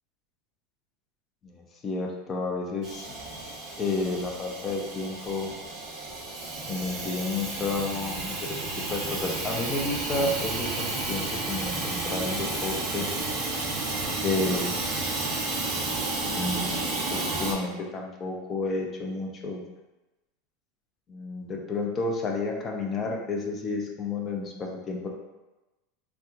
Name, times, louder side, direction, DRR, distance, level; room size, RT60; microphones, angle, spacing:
voice 1, 1.4-3.1 3.8-5.5 6.7-8.4 8.9-13.1 14.2-15.5 16.3-19.6 21.1-25.1, left 3 dB, 25° left, 0 dB, 0.5 m, -31 dB
Hiss / Toilet flush / Trickle dribble, 2.8-17.5, right 2 dB, 35° right, 0.9 m, -32 dB
3.4 x 2.8 x 2.4 m, 1.1 s
supercardioid pair, 145°, 0 cm